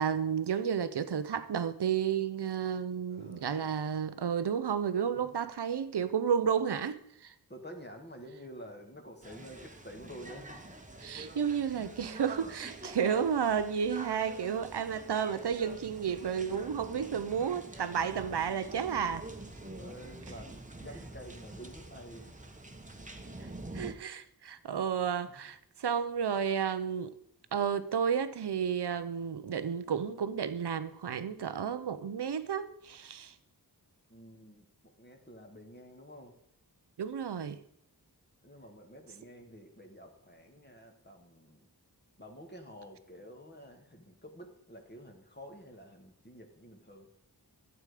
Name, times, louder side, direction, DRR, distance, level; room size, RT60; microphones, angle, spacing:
voice 1, 0.0-7.3 11.0-19.3 23.7-27.1 27.5-33.3 37.0-37.6, right 7 dB, 80° right, 0.8 m, -32 dB
voice 2, 3.1-3.8 5.2-5.3 7.5-10.7 19.8-22.4 25.3-25.4 34.1-36.4 38.4-41.7 42.2-47.1, equal, 25° left, 1.9 m, -50 dB
sound 1, 9.2-23.9, right 2 dB, 20° right, 1.2 m, -46 dB
12.0 x 8.2 x 5.0 m
wide cardioid pair, 60°, 40 cm